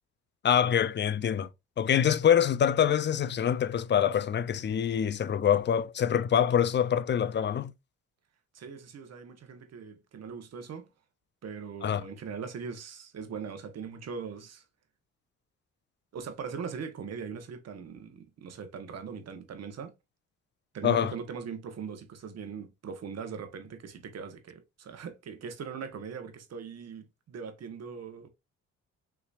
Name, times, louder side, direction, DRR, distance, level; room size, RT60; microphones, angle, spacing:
voice 1, 0.4-1.5 1.8-7.7 11.8-12.0 20.8-21.1, left 9 dB, 35° left, 0.5 m, -25 dB
voice 2, 8.5-10.9 11.4-14.6 16.1-19.9 20.7-28.3, right 6 dB, 55° right, 1.3 m, -40 dB
5.7 x 3.2 x 2.5 m
cardioid pair, 90°, 30 cm